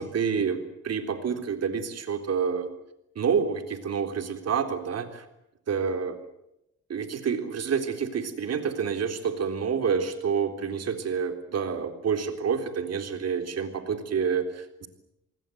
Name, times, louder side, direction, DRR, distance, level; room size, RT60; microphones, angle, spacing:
voice 1, 0.0-2.7 3.2-5.3 5.7-6.2 6.9-14.9, right 6 dB, 55° right, 8 dB, 3.9 m, -28 dB
29.0 x 20.0 x 8.0 m, 0.87 s
cardioid pair, 90°, 30 cm